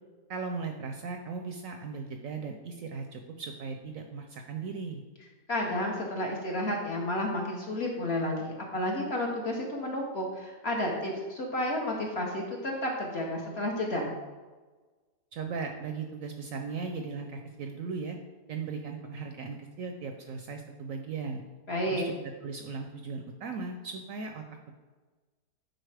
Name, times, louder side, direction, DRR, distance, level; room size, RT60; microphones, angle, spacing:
voice 1, 0.3-5.0 15.3-18.2 18.5-21.4 21.9-24.4, right 4 dB, 70° right, 4 dB, 0.8 m, -37 dB
voice 2, 5.5-14.1 21.7-22.1, left 1 dB, 50° left, 0 dB, 0.9 m, -31 dB
9.0 x 4.0 x 3.3 m, 1.3 s
omnidirectional pair, 1.8 m